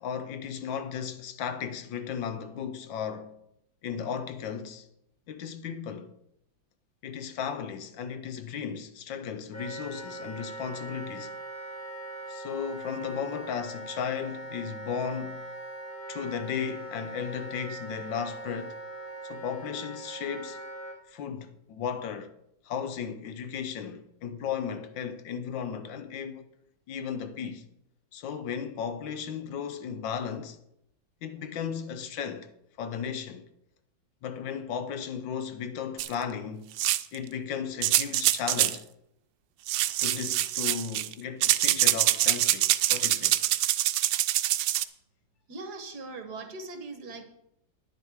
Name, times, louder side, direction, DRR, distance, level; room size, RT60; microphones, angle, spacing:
voice 1, 0.0-3.4 3.8-4.9 5.3-6.1 7.0-11.3 12.3-15.5 16.1-18.8 19.2-20.6 21.1-22.3 22.6-26.4 26.9-27.7 28.1-30.6 31.2-32.5 32.8-33.5 34.2-36.7 37.1-38.8 40.0-43.4, left 7 dB, 75° left, 1.5 m, -35 dB
Wind instrument woodwind instrument, 9.5-21.0, right 1 dB, 30° left, 1.8 m, -41 dB
sound 1, 36.0-36.1 36.8-37.2 37.8-38.8 39.7-41.1 41.4-44.8, right 14 dB, 80° right, 1.2 m, -25 dB
voice 2, 45.5-47.2, right 3 dB, 60° right, 1.7 m, -40 dB
10.5 x 9.9 x 4.7 m
omnidirectional pair, 2.0 m